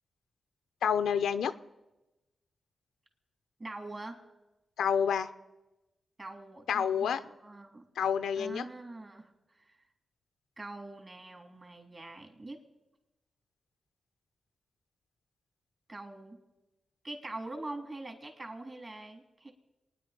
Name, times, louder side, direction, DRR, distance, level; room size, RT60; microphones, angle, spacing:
voice 1, 0.8-1.5 4.8-5.3 6.7-7.2 8.0-8.6, left 7 dB, 85° left, 10 dB, 0.6 m, -28 dB
voice 2, 3.6-4.2 6.2-7.8 8.4-9.8 10.6-12.6 15.9-16.4 17.0-19.5, right 2 dB, 40° right, 4 dB, 3.6 m, -44 dB
26.5 x 10.0 x 5.3 m, 1.0 s
supercardioid pair, 45°, 0 cm